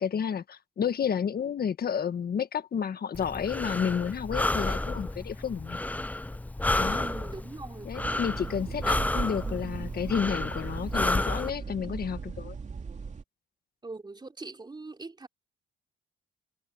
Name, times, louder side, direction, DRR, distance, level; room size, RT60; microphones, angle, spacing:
voice 1, 0.0-5.8 6.8-7.1 7.8-12.6, left 7 dB, 50° left, 1.6 m, -31 dB
Breathing, 3.1-11.5, left 2 dB, 10° left, 0.5 m, -31 dB
voice 2, 6.9-7.9 13.8-15.3, right 3 dB, 20° right, 3.2 m, -41 dB
sound 1, 8.0-13.2, right 5 dB, 35° right, 2.8 m, -38 dB
cardioid pair, 90°, 20 cm